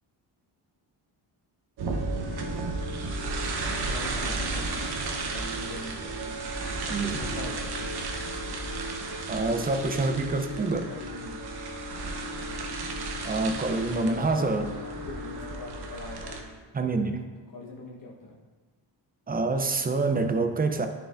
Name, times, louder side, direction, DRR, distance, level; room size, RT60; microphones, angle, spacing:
sound 1, 1.8-16.4, right 2 dB, 60° right, 0.9 m, -33 dB
voice 1, 3.6-6.5 7.1-7.8 10.5-11.6 14.1-16.6 17.5-18.3, left 2 dB, 45° left, -4 dB, 1.3 m, -43 dB
voice 2, 6.9-7.2 9.3-10.9 13.2-14.7 16.7-17.2 19.3-20.9, right 3 dB, 20° right, 6 dB, 0.5 m, -26 dB
10.0 x 4.7 x 2.5 m, 1.4 s
cardioid pair, 105°, 44 cm